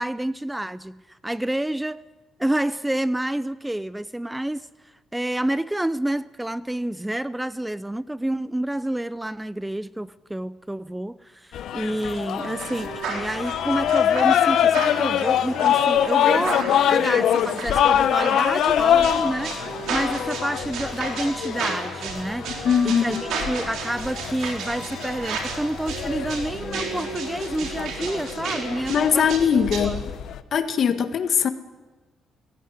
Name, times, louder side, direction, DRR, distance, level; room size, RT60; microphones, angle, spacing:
voice 1, 0.0-2.0 2.4-19.6 19.9-30.0, right 1 dB, 10° right, 0.6 m, -29 dB
sound 1, 11.5-30.4, left 10 dB, 75° left, 1.0 m, -24 dB
sound 2, 12.4-30.0, right 4 dB, 80° right, 4.4 m, -33 dB
voice 2, 22.6-23.2 28.9-30.0 30.5-31.5, left 7 dB, 60° left, 1.6 m, -21 dB
19.5 x 16.5 x 9.6 m
cardioid pair, 90°, 0 cm